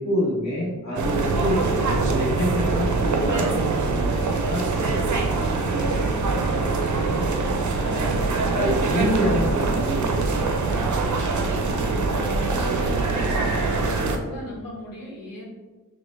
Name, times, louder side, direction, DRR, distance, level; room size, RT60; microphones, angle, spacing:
voice 1, 0.0-1.6 2.0-4.2 4.5-5.0 7.8-8.1 8.5-10.4, equal, 55° left, -4 dB, 1.3 m, -26 dB
sound 1, 1.0-14.2, right 3 dB, 60° right, 0.6 m, -23 dB
voice 2, 6.5-7.3 8.1-8.6 11.7-15.4, left 1 dB, 85° left, -6 dB, 1.0 m, -37 dB
6.0 x 2.1 x 3.1 m, 1.3 s
wide cardioid pair, 65°, 33 cm